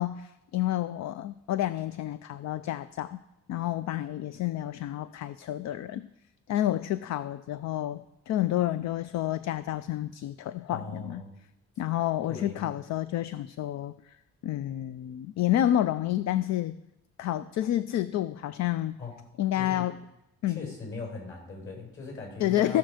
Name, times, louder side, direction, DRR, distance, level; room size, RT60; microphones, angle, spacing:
voice 1, 0.0-3.2 3.5-6.1 6.5-11.2 11.8-14.2 14.4-16.8 17.2-19.0 19.4-20.0 20.4-20.7 22.4-22.8, left 13 dB, 65° left, 15 dB, 0.5 m, -29 dB
voice 2, 10.7-11.4 12.3-12.7 19.0-19.1 19.5-19.9 20.5-22.8, left 3 dB, 45° left, 1 dB, 5.3 m, -40 dB
16.0 x 6.5 x 5.0 m, 0.88 s
cardioid pair, 90°, 30 cm